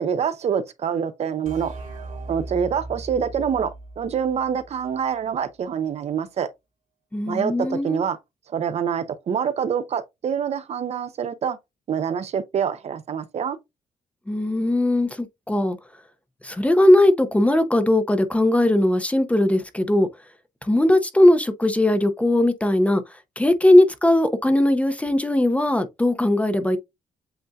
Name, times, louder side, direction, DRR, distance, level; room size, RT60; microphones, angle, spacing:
voice 1, 0.0-1.7 2.3-6.5 7.3-8.2 8.5-11.6 11.9-13.6, right 7 dB, 55° right, 0.5 m, -26 dB
sound 1, 1.5-5.0, right 2 dB, 70° right, 2.2 m, -38 dB
voice 2, 7.1-8.0 14.3-15.8 16.4-20.1 20.6-23.0 23.4-26.8, left 1 dB, 10° left, 0.6 m, -19 dB
7.8 x 2.6 x 2.3 m
cardioid pair, 110°, 13 cm